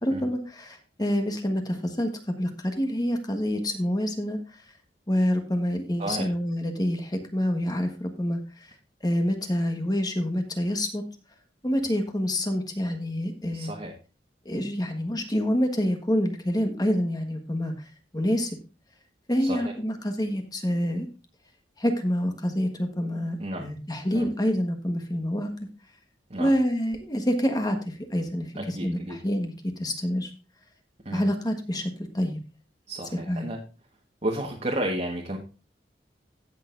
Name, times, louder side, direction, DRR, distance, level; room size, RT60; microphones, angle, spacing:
voice 1, 0.0-4.4 5.1-8.7 9.0-11.0 11.6-13.7 14.4-17.9 18.1-18.6 19.3-21.1 21.8-25.7 26.4-30.3 31.1-32.4 33.1-33.5, equal, 20° left, 5 dB, 1.4 m, -27 dB
voice 2, 13.5-13.9 19.4-19.7 23.4-23.7 24.1-24.3 26.3-26.5 28.6-29.2 31.0-31.2 32.9-33.6 34.2-35.4, right 1 dB, 40° right, -1 dB, 1.5 m, -32 dB
16.5 x 6.5 x 2.6 m, 0.33 s
head